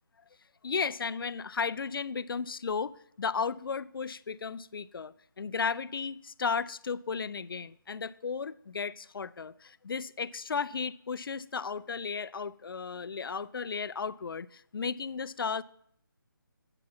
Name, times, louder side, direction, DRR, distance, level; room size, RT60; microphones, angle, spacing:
voice 1, 0.6-2.9 3.2-15.6, left 5 dB, 75° left, 0.4 m, -34 dB
8.7 x 4.7 x 7.0 m
figure-of-eight pair, 160°, 12 cm